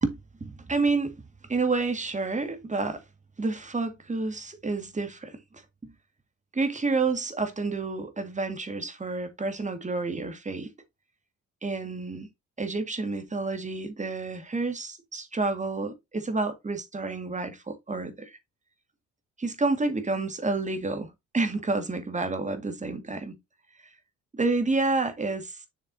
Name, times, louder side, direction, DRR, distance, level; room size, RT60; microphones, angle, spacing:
voice 1, 0.0-1.2 1.5-3.0 3.4-5.9 6.5-10.7 11.6-12.3 12.6-18.4 19.4-23.3 24.3-25.6, right 3 dB, 25° right, 2.0 m, -29 dB
6.9 x 6.7 x 2.8 m
cardioid pair, 90°, 30 cm